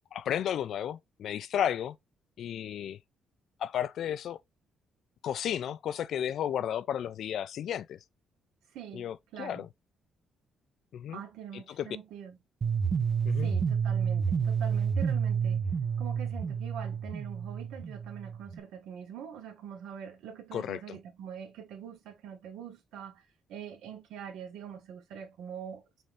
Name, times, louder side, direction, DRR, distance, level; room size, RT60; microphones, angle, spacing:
voice 1, 0.1-2.0 2.4-3.0 3.6-4.4 5.2-8.0 8.9-9.7 10.9-11.2 11.8-11.9 13.3-13.5 20.5-21.0, left 10 dB, 70° left, 0.4 m, -33 dB
voice 2, 8.7-9.6 11.1-12.4 13.4-15.7 16.0-25.9, right 8 dB, 85° right, 1.1 m, -44 dB
sound 1, 12.6-18.6, right 6 dB, 45° right, 0.6 m, -29 dB
5.3 x 2.6 x 3.4 m
cardioid pair, 90°, 0 cm